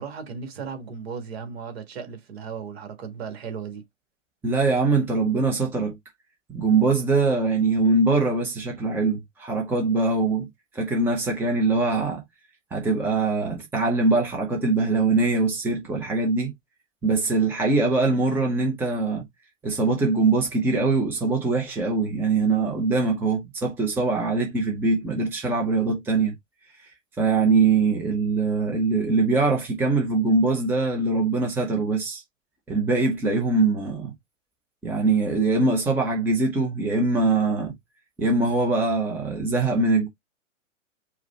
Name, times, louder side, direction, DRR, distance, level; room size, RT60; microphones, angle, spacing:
voice 1, 0.0-3.8, right 6 dB, 50° right, 1.6 m, -36 dB
voice 2, 4.4-6.0 6.5-10.5 10.7-12.2 12.7-16.5 17.0-19.2 19.6-26.3 27.2-32.2 32.7-34.1 34.8-37.7 38.2-40.1, right 3 dB, 5° right, 0.7 m, -22 dB
4.8 x 2.3 x 4.2 m
figure-of-eight pair, 110°, 39 cm